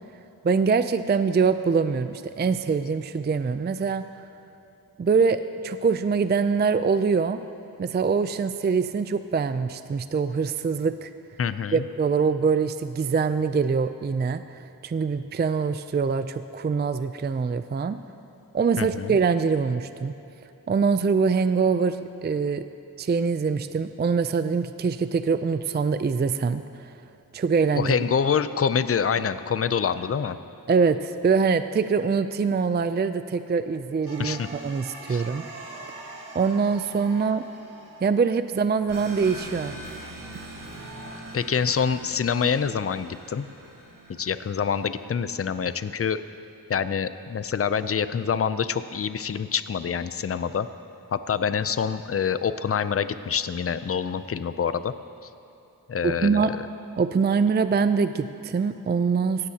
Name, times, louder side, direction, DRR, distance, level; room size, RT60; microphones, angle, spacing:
voice 1, 0.4-4.1 5.0-7.4 7.8-11.1 11.7-18.0 18.5-20.1 20.7-22.6 23.0-26.9 27.3-27.9 30.7-35.5 36.3-37.4 38.0-39.8 56.0-56.5 57.0-59.5, right 5 dB, 30° right, 11 dB, 0.4 m, -24 dB
voice 2, 11.4-11.8 18.8-19.1 27.8-30.4 34.2-34.5 35.1-35.2 41.3-43.5 44.2-46.2 46.7-50.7 51.1-54.9 55.9-56.6, left 7 dB, 40° left, 13 dB, 0.5 m, -26 dB
sound 1, 34.1-41.2, right 2 dB, 85° right, 1.7 m, -43 dB
sound 2, 38.9-45.1, right 1 dB, 60° right, 1.9 m, -42 dB
17.5 x 16.0 x 2.8 m, 2.9 s
wide cardioid pair, 75°, 37 cm